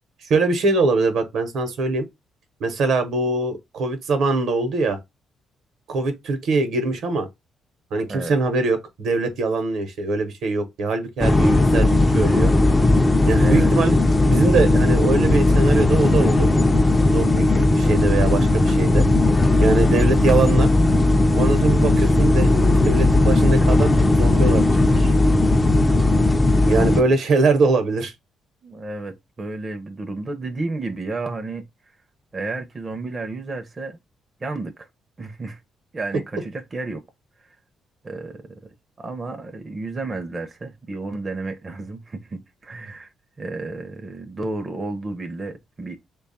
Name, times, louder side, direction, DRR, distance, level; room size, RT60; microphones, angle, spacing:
voice 1, 0.3-2.1 2.6-5.0 5.9-7.3 7.9-12.5 13.3-16.5 17.1-19.1 19.6-20.7 21.3-23.9 24.2-25.1 26.6-28.1, right 3 dB, 70° right, 0.9 m, -22 dB
sound 1, 11.2-27.0, left 2 dB, 20° left, 0.4 m, -17 dB
sound 2, 14.6-26.4, left 1 dB, 65° left, 0.7 m, -36 dB
voice 2, 26.6-27.2 28.6-31.7 32.3-34.0 34.4-34.9 35.2-35.6 35.9-37.0 38.0-38.7 39.0-43.1 43.4-46.0, right 3 dB, 30° right, 0.6 m, -32 dB
3.1 x 2.3 x 4.0 m
cardioid pair, 90°, 0 cm